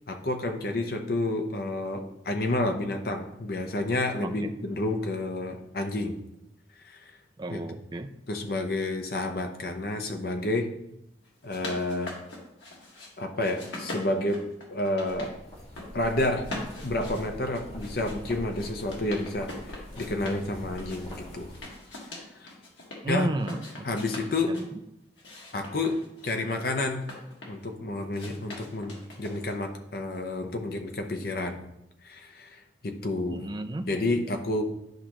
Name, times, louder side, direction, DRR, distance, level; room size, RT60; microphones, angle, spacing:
voice 1, 0.1-6.2 6.8-7.2 7.5-7.6 8.3-10.7 11.4-12.1 13.2-14.4 14.7-15.3 15.9-16.5 16.8-21.5 22.4-22.5 23.1-23.3 23.8-24.6 25.5-27.0 27.5-31.6 32.0-33.4 33.9-34.6, left 2 dB, 55° left, 5 dB, 0.8 m, -30 dB
voice 2, 7.4-8.1 23.0-23.9 24.5-24.6 33.3-33.8, right 1 dB, 25° right, 7 dB, 0.4 m, -32 dB
sound 1, 11.3-13.1 13.4-15.3 15.6-16.1 16.4-20.4 20.8-23.0 23.4-24.7 25.2-27.7 28.1-29.6, left 2 dB, 90° left, 1.8 m, -42 dB
sound 2, 15.0-21.6, equal, 35° left, 1.9 m, -43 dB
10.5 x 4.9 x 3.0 m, 0.85 s
head